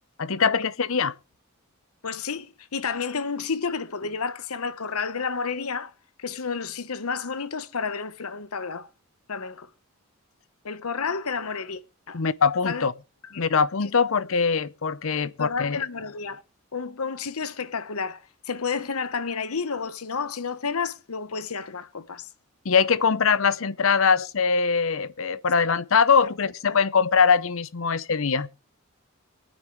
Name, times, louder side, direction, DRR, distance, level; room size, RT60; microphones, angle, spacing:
voice 1, 0.2-1.1 12.1-12.9 13.4-15.8 22.6-28.5, left 5 dB, 65° left, 0.7 m, -22 dB
voice 2, 2.0-5.9 6.2-8.9 9.3-9.7 10.6-11.8 12.1-12.2 12.6-12.9 13.3-13.4 15.2-16.4 16.7-22.3 26.2-26.3 26.6-26.8, left 5 dB, 85° left, 1.0 m, -31 dB
23.5 x 9.2 x 3.1 m
head